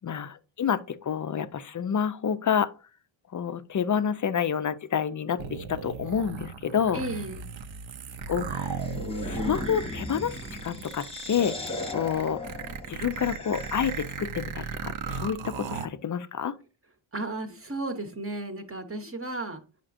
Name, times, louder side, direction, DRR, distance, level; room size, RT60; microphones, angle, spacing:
voice 1, 0.0-2.7 3.3-7.0 8.3-8.8 9.3-12.4 12.9-16.5, left 7 dB, 40° left, 0.4 m, -29 dB
sound 1, 5.4-15.9, right 6 dB, 65° right, 0.8 m, -36 dB
voice 2, 6.9-7.5 17.1-19.6, right 2 dB, 25° right, 0.9 m, -34 dB
sound 2, 8.8-14.3, left 2 dB, 10° left, 1.0 m, -37 dB
8.7 x 5.8 x 2.6 m
wide cardioid pair, 145°, 50 cm